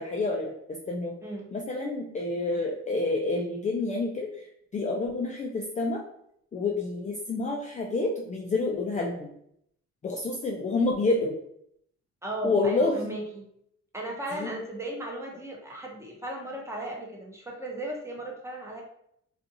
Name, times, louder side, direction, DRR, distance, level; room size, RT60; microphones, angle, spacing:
voice 1, 0.0-1.2 1.5-4.3 4.7-6.0 6.5-9.3 10.0-11.4 12.4-13.2 14.3-14.5, left 3 dB, 25° left, -1 dB, 0.4 m, -28 dB
voice 2, 12.2-13.5 13.9-18.8, right 1 dB, 10° right, -1 dB, 0.7 m, -36 dB
2.5 x 2.4 x 2.7 m, 0.71 s
cardioid pair, 90°, 30 cm